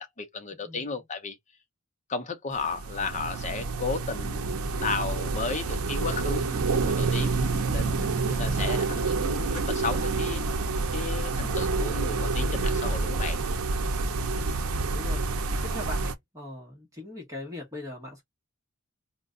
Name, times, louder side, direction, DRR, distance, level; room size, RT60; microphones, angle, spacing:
voice 1, 0.0-1.4 2.1-4.5 4.8-7.4 7.7-10.4 10.9-13.4, left 4 dB, 35° left, 0.7 m, -34 dB
voice 2, 0.6-1.0 8.4-8.8 14.4-15.2 15.6-18.2, left 1 dB, 15° right, 1.2 m, -40 dB
sound 1, 2.6-16.1, right 3 dB, 85° right, 0.6 m, -28 dB
2.5 x 2.2 x 3.6 m
head